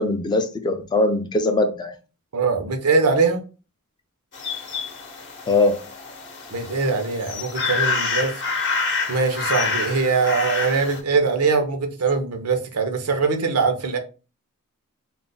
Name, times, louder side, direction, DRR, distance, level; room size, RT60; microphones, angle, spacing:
voice 1, 0.0-1.9 5.5-5.8, left 2 dB, 20° left, 0.3 m, -21 dB
voice 2, 2.3-3.4 6.5-8.3 9.1-14.0, right 4 dB, 90° right, 0.6 m, -22 dB
sound 1, 4.3-11.0, left 4 dB, 50° left, 0.7 m, -27 dB
2.4 x 2.1 x 3.7 m
head